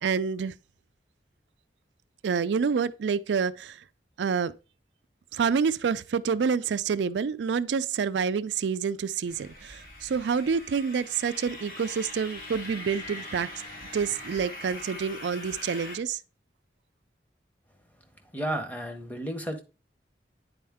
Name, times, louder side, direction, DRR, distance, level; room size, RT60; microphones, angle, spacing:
voice 1, 0.0-0.5 2.2-3.8 4.2-4.5 5.3-13.5 13.9-16.2, right 6 dB, 90° right, 0.4 m, -28 dB
sound 1, 9.3-16.0, left 1 dB, 50° left, 1.8 m, -42 dB
voice 2, 18.3-19.6, right 1 dB, 10° left, 0.8 m, -32 dB
9.2 x 4.3 x 3.5 m
head